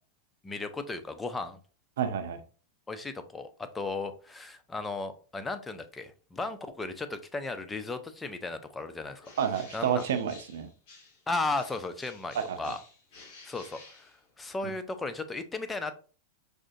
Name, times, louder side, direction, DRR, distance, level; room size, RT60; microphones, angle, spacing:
voice 1, 0.4-1.6 2.9-9.3 9.7-10.0 11.3-12.8 13.4-14.1 14.4-16.0, left 3 dB, 10° left, 0.4 m, -35 dB
voice 2, 2.0-2.4 9.4-10.7 12.3-12.7, right 8 dB, 80° right, 0.5 m, -30 dB
Bird, 9.2-11.3 11.5-14.6, left 3 dB, 50° left, 1.6 m, -52 dB
4.9 x 2.5 x 2.4 m
supercardioid pair, 135°, 0 cm